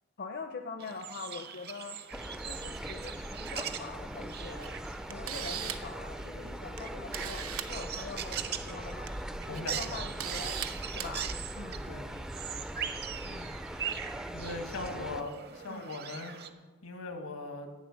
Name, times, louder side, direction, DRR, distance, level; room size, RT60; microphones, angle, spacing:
voice 1, 0.2-2.0 2.5-4.7 5.1-9.1 9.5-10.6 10.9-11.9 13.2-13.6 14.8-15.3 15.7-15.9, left 4 dB, 50° left, 6 dB, 0.6 m, -44 dB
sound 1, 0.8-16.5, right 8 dB, 50° right, 0.8 m, -42 dB
sound 2, 2.1-15.2, equal, 5° right, 0.4 m, -41 dB
Camera, 4.6-4.7 5.1-5.9 6.8-6.9 7.1-7.7 8.8-9.1 9.5-9.6 10.2-10.7 11.0-11.1, right 10 dB, 85° right, 0.8 m, -37 dB
voice 2, 9.4-9.8 11.9-12.1 14.3-15.3 15.6-16.3 16.8-17.7, left 3 dB, 85° left, 6 dB, 1.5 m, -39 dB
11.0 x 8.6 x 6.4 m, 1.3 s
head